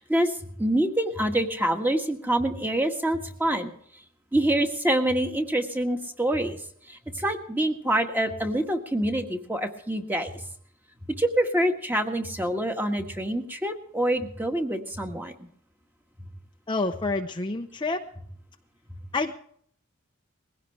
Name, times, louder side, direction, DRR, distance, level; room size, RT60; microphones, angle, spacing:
voice 1, 0.0-3.7 4.3-6.6 6.9-10.4 11.0-15.5, right 1 dB, 10° right, 4 dB, 1.6 m, -26 dB
voice 2, 16.7-18.0 19.1-19.4, left 3 dB, 25° left, 4 dB, 0.7 m, -28 dB
20.5 x 16.5 x 3.3 m, 0.64 s
head